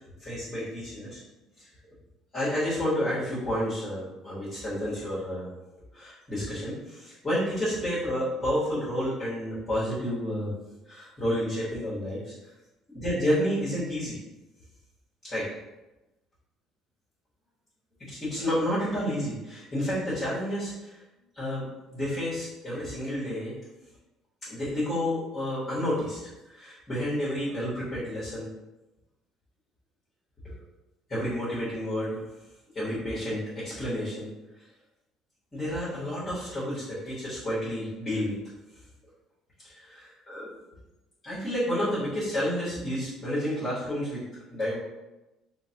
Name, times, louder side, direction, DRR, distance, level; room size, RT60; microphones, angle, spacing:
voice 1, 0.2-1.2 1.6-1.7 2.3-5.5 5.9-10.5 10.9-12.3 12.9-14.2 15.2-15.5 18.1-20.9 21.3-21.6 21.9-23.5 24.4-26.2 26.5-28.5 31.1-32.1 32.7-34.3 35.5-38.3 39.7-40.5 41.2-44.2 44.5-44.8, equal, 20° left, -10 dB, 1.2 m, -30 dB
3.8 x 2.1 x 2.8 m, 1.0 s
cardioid pair, 130°, 0 cm